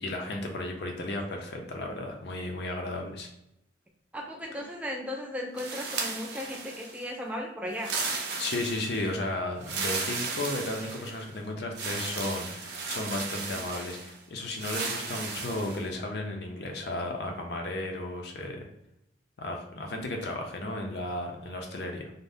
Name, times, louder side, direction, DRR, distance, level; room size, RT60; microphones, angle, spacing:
voice 1, 0.0-3.3 8.4-18.7 19.4-22.1, left 2 dB, 65° left, 2 dB, 0.5 m, -34 dB
voice 2, 4.1-7.9, left 1 dB, 10° right, 0 dB, 0.4 m, -36 dB
sound 1, 5.6-7.1 7.7-9.1 9.6-11.3 11.7-14.1 14.6-15.8, right 4 dB, 65° right, 0.5 m, -35 dB
2.6 x 2.1 x 3.3 m, 0.82 s
head